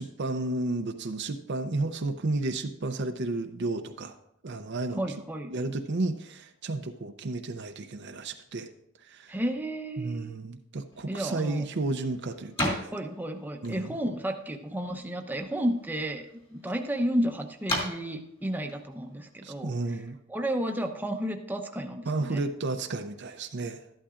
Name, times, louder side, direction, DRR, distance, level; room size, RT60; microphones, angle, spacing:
voice 1, 0.0-4.2 4.4-5.0 5.5-8.7 9.0-9.4 10.0-12.9 13.6-14.0 19.4-20.2 22.1-23.8, right 2 dB, 55° right, 7 dB, 0.6 m, -32 dB
voice 2, 5.0-5.5 9.3-10.3 11.1-11.6 12.9-19.7 20.3-22.4, right 1 dB, 10° right, 4 dB, 0.8 m, -32 dB
sound 1, 10.9-20.1, left 1 dB, 30° left, 2.3 m, -39 dB
13.0 x 11.5 x 2.5 m, 0.79 s
head